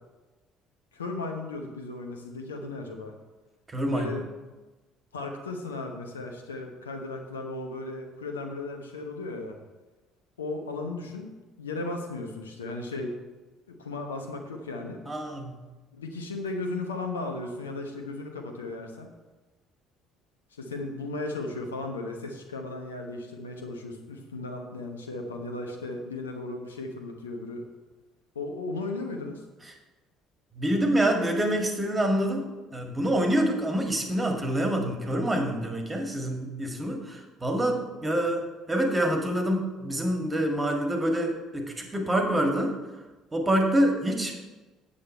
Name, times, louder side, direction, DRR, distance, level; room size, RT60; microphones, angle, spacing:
voice 1, 0.9-3.1 3.9-4.2 5.1-9.6 10.4-13.1 13.7-15.0 15.9-19.1 20.5-27.6 28.3-29.4, left 2 dB, 80° left, 3 dB, 0.9 m, -36 dB
voice 2, 3.7-4.1 15.1-15.5 30.5-42.8 43.3-44.4, right 1 dB, 20° right, 3 dB, 1.9 m, -26 dB
8.7 x 7.4 x 4.4 m, 1.2 s
figure-of-eight pair, 55°, 0 cm